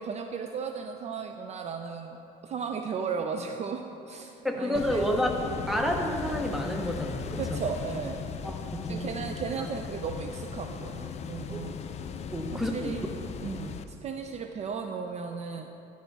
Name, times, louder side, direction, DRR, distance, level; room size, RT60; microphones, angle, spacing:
voice 1, 0.0-5.1 7.4-8.2 8.9-11.7 12.5-13.1 13.4-15.7, right 6 dB, 40° right, 5 dB, 0.4 m, -35 dB
voice 2, 4.4-5.3 5.7-7.6 8.4-9.1 11.5-11.6 12.3-12.9, equal, ahead, 2 dB, 0.8 m, -30 dB
sound 1, 4.7-13.8, left 6 dB, 40° left, 0.4 m, -37 dB
11.0 x 4.7 x 4.0 m, 2.8 s
cardioid pair, 110°, 17 cm